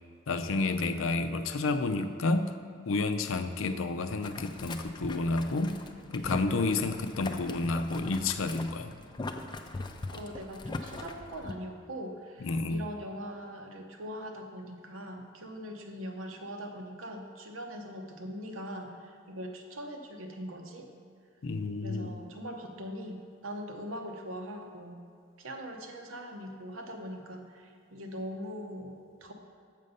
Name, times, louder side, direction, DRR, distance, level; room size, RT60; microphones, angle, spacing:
voice 1, 0.3-2.6 2.9-5.8 6.1-8.9 12.5-12.8 21.4-22.1, left 3 dB, 80° left, 9 dB, 0.5 m, -30 dB
Boiling, 4.2-11.5, left 2 dB, 20° left, 0.4 m, -41 dB
voice 2, 10.1-20.9 21.8-25.0 25.4-29.3, equal, 85° right, 3 dB, 0.9 m, -41 dB
7.4 x 6.6 x 5.4 m, 2.3 s
head